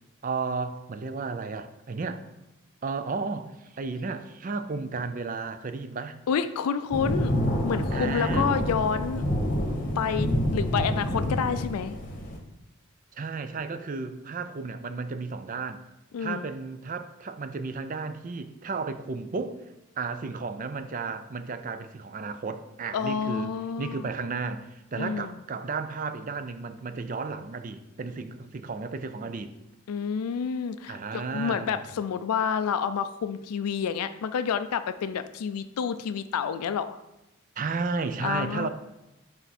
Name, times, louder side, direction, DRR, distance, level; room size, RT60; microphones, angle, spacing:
voice 1, 0.2-2.2 2.8-6.2 7.9-8.5 13.2-15.8 16.2-23.5 23.8-29.5 30.9-31.9 37.6-38.7, right 4 dB, 35° right, 0.4 m, -33 dB
voice 2, 6.3-7.3 7.6-9.2 10.0-12.0 16.1-16.5 22.9-24.1 25.0-25.3 29.9-37.0 38.2-38.7, left 7 dB, 85° left, 0.4 m, -29 dB
sound 1, 6.9-12.4, equal, 35° left, 1.0 m, -28 dB
9.0 x 3.5 x 4.2 m
head